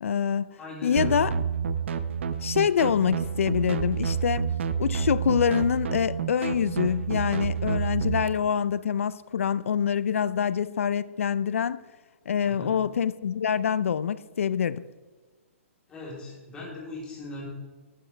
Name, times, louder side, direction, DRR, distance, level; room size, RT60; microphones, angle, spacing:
voice 1, 0.0-0.5 0.8-1.3 2.4-4.5 4.8-11.8 12.3-14.8, left 7 dB, 75° left, 0.5 m, -25 dB
voice 2, 0.6-1.2 12.4-12.8 15.9-17.5, left 2 dB, 10° left, 3.5 m, -39 dB
sound 1, 1.0-8.3, right 7 dB, 60° right, 0.8 m, -29 dB
12.5 x 9.4 x 3.4 m
hypercardioid pair, 160°, 7 cm